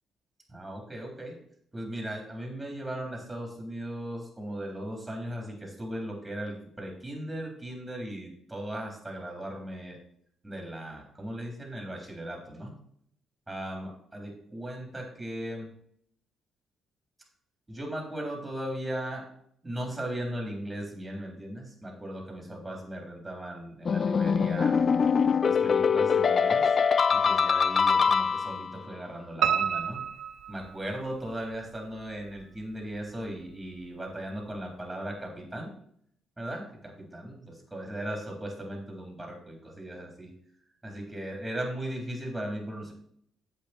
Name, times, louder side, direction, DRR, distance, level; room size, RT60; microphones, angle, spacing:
voice 1, 0.5-1.4 1.7-10.0 10.4-12.7 13.5-15.7 17.7-19.3 19.6-24.9 25.4-26.7 27.1-30.1 30.5-35.7 36.4-40.3 40.8-42.9, right 1 dB, 15° right, 1 dB, 3.8 m, -37 dB
sound 1, 23.9-28.8, left 6 dB, 45° left, 0.4 m, -23 dB
Piano, 29.4-31.3 31.8-32.6 32.9-33.0 33.5-33.6 33.8-33.9, right 8 dB, 75° right, 0.6 m, -30 dB
8.4 x 7.8 x 4.5 m, 0.66 s
cardioid pair, 90°, 0 cm